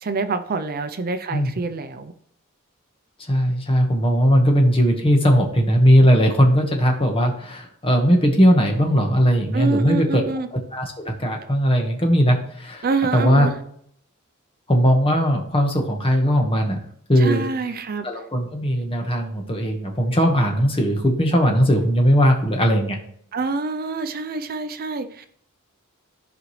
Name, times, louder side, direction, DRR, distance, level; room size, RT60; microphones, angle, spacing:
voice 1, 0.0-2.1 9.5-10.5 12.8-13.5 17.2-18.1 23.3-25.3, right 3 dB, 45° right, 9 dB, 0.5 m, -26 dB
voice 2, 3.3-10.2 10.7-12.8 13.1-13.5 14.7-16.8 17.1-17.4 18.0-23.0, equal, 25° left, 2 dB, 1.5 m, -18 dB
14.0 x 5.0 x 3.2 m, 0.66 s
head